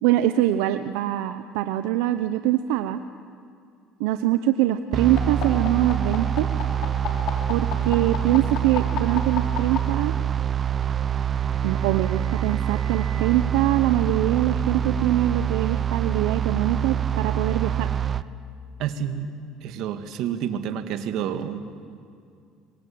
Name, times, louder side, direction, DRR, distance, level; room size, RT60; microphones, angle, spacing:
voice 1, 0.0-3.0 4.0-6.5 7.5-10.1 11.6-17.9, right 13 dB, 85° right, 10 dB, 0.8 m, -23 dB
sound 1, 4.9-18.2, right 9 dB, 30° right, 0.7 m, -25 dB
sound 2, 5.2-9.8 10.9-13.2, left 11 dB, 60° left, 3.8 m, -34 dB
voice 2, 18.8-19.3 19.6-21.6, right 9 dB, 65° right, 8 dB, 2.0 m, -29 dB
27.0 x 23.5 x 8.7 m, 2.3 s
cardioid pair, 125°, 0 cm